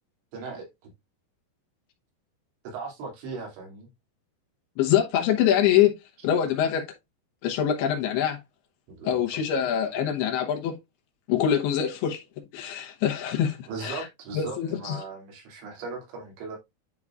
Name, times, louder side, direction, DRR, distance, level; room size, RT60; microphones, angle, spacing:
voice 1, 0.3-0.9 2.6-3.9 8.9-9.4 13.7-16.6, right 4 dB, 85° right, 4.9 m, -38 dB
voice 2, 4.8-5.9 6.2-6.9 7.4-8.4 9.0-10.8 11.3-12.2 12.5-14.0 14.3-15.0, left 10 dB, 70° left, 2.9 m, -24 dB
11.0 x 4.8 x 2.4 m
omnidirectional pair, 5.0 m